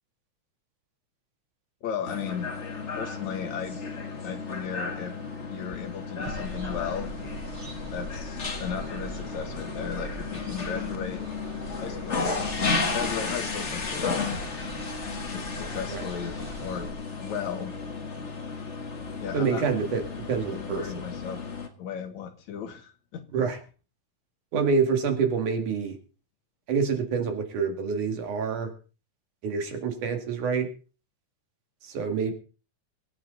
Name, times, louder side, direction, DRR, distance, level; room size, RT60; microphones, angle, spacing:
voice 1, 1.8-2.5 2.9-3.8 4.2-5.2 5.5-7.1 7.9-11.2 11.8-12.4 12.7-14.3 15.3-16.9 17.2-17.7 19.2-19.7 20.5-21.4 21.8-23.2, left 7 dB, 70° left, 8 dB, 2.7 m, -35 dB
sound 1, 2.0-21.7, left 4 dB, 30° left, 1.4 m, -34 dB
sound 2, 6.2-16.9, right 1 dB, 50° right, 6.4 m, -40 dB
voice 2, 19.3-21.0 23.3-23.6 24.5-26.0 26.7-28.7 29.4-30.7 31.8-32.3, right 5 dB, 85° right, 5 dB, 3.8 m, -27 dB
22.5 x 9.6 x 4.0 m, 0.36 s
omnidirectional pair, 3.5 m